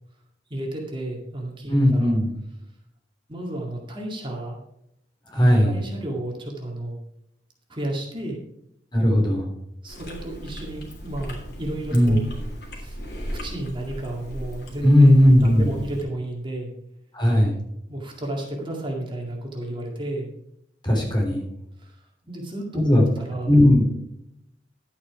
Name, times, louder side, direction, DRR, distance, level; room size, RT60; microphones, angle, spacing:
voice 1, 0.5-2.2 3.3-4.6 5.3-7.0 7.7-8.4 9.8-12.3 12.7-13.0 13.3-15.1 15.4-16.7 17.9-20.3 21.8-22.8 23.2-23.5, right 1 dB, 30° right, 0 dB, 2.1 m, -32 dB
voice 2, 1.7-2.3 5.3-5.8 8.9-9.5 11.9-12.2 14.8-15.7 17.1-17.6 20.8-21.4 22.7-23.0 23.4-23.9, left 1 dB, 25° left, 0 dB, 3.3 m, -17 dB
Chewing mastication, 9.9-16.0, equal, 60° left, 3.1 m, -37 dB
11.5 x 8.5 x 4.7 m, 0.77 s
head